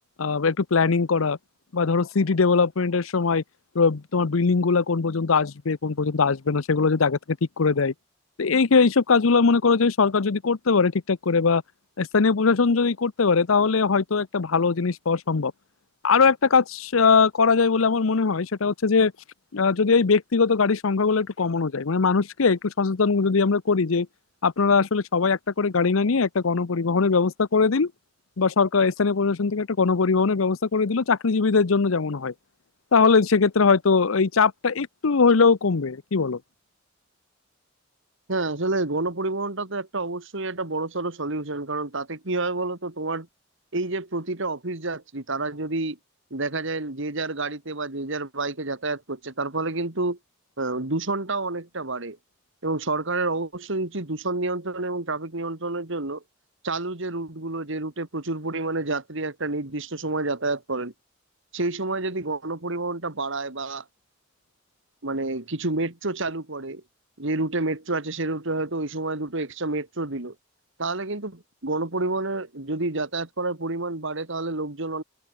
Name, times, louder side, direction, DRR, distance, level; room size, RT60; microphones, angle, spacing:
voice 1, 0.2-1.4 1.7-3.4 3.7-7.9 8.4-11.6 12.0-15.5 16.0-19.1 19.5-24.1 24.4-27.9 28.4-32.3 32.9-36.4, left 4 dB, 80° left, 0.7 m, -21 dB
voice 2, 38.3-43.3 43.7-46.0 46.3-50.2 50.6-52.2 52.6-56.2 56.6-60.9 61.5-63.8 65.0-66.8 67.2-70.3 70.8-75.0, right 2 dB, 65° right, 2.6 m, -29 dB
head